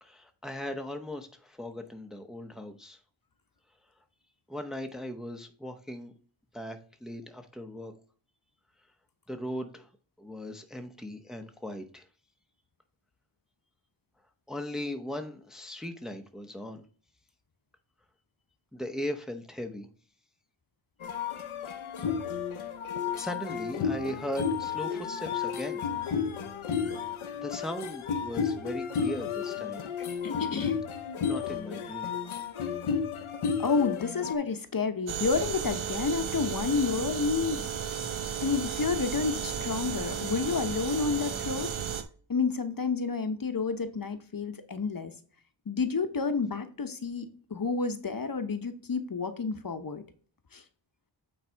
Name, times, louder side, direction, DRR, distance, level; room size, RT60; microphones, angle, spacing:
voice 1, 0.0-3.0 4.5-6.1 6.5-7.9 9.3-9.9 10.2-12.0 14.5-16.8 18.7-19.9 23.1-25.8 27.3-29.8 31.2-32.1, left 1 dB, ahead, 0.8 m, -38 dB
sound 1, 21.0-34.3, left 6 dB, 80° left, 0.9 m, -32 dB
voice 2, 30.2-30.8 33.6-38.0 38.4-41.8 42.3-45.1 45.7-50.0 50.5-50.6, left 4 dB, 45° left, 0.9 m, -30 dB
sound 2, 35.1-42.0, right 8 dB, 75° right, 0.9 m, -34 dB
8.7 x 3.3 x 4.5 m
wide cardioid pair, 80°, 48 cm